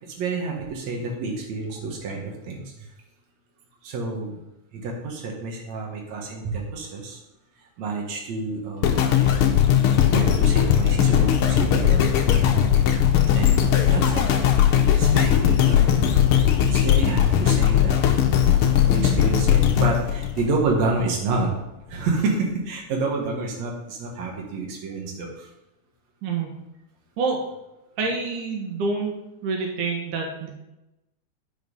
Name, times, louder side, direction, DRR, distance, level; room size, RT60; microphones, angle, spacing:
voice 1, 0.0-2.9 3.8-4.4 4.7-7.2 7.8-9.1 10.1-12.1 13.3-14.3 14.9-16.2 16.6-18.0 18.9-21.5 21.9-25.5, right 3 dB, 65° right, 0 dB, 2.8 m, -29 dB
sound 1, 8.8-21.0 21.6-21.7, left 9 dB, 80° left, 1.2 m, -19 dB
voice 2, 28.0-29.1 29.4-30.5, right 4 dB, 90° right, 0 dB, 2.9 m, -27 dB
9.5 x 5.0 x 5.4 m, 0.92 s
omnidirectional pair, 3.5 m